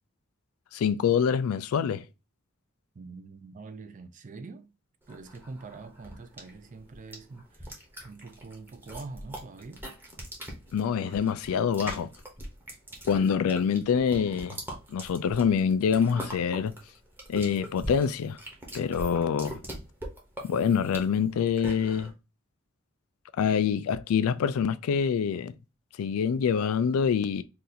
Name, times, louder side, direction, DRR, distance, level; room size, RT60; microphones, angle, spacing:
voice 1, 0.7-2.0 10.7-12.1 13.1-14.6 14.9-16.7 17.3-18.4 18.7-19.5 20.4-22.1 23.4-25.5 26.0-27.4, left 7 dB, 80° left, 0.3 m, -25 dB
voice 2, 3.0-4.7 5.1-7.7 8.0-9.8, right 3 dB, 35° right, 0.4 m, -44 dB
sound 1, 5.1-22.1, right 1 dB, 10° right, 0.9 m, -42 dB
2.8 x 2.5 x 3.8 m
head